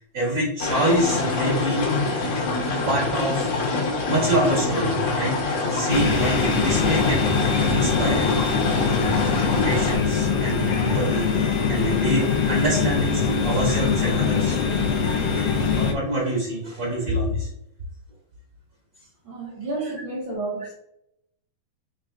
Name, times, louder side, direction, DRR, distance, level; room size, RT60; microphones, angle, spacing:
voice 1, 0.0-1.9 2.6-3.6 4.1-5.3 5.7-8.3 9.6-14.6 15.2-17.5, right 1 dB, 45° right, -6 dB, 1.5 m, -26 dB
deep a small stream in the woods front, 0.6-10.0, left 3 dB, 60° left, 1.9 m, -25 dB
sound 1, 5.9-15.9, left 5 dB, 80° left, 1.7 m, -23 dB
voice 2, 19.2-20.7, right 2 dB, 70° right, -7 dB, 1.1 m, -31 dB
5.6 x 3.8 x 2.4 m, 0.76 s
omnidirectional pair, 4.1 m